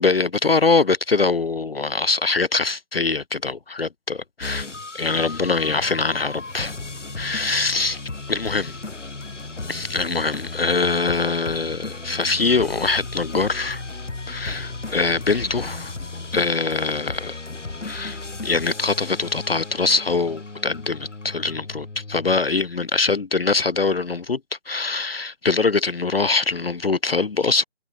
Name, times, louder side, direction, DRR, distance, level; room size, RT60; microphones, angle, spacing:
voice 1, 0.0-4.7 4.9-6.7 7.2-8.0 8.3-8.7 9.7-13.8 14.3-15.9 16.3-17.4 17.8-24.4 24.7-27.6, left 4 dB, 50° left, 1.2 m, -23 dB
sound 1, 4.4-22.4, left 3 dB, 65° left, 5.3 m, -35 dB
figure-of-eight pair, 160°, 38 cm